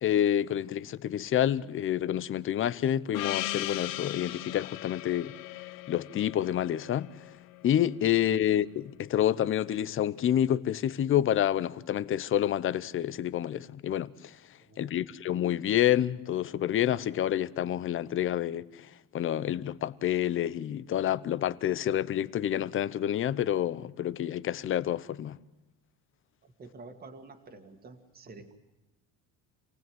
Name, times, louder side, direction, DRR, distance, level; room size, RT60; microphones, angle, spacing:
voice 1, 0.0-5.3 5.9-7.1 7.6-14.4 14.8-18.8 19.1-25.4, left 11 dB, 35° left, 0.8 m, -28 dB
Gong, 3.1-7.9, left 16 dB, 70° left, 1.0 m, -38 dB
voice 2, 14.6-15.3 26.4-28.5, right 3 dB, 25° right, 2.1 m, -50 dB
28.0 x 18.5 x 7.8 m
cardioid pair, 155°, 36 cm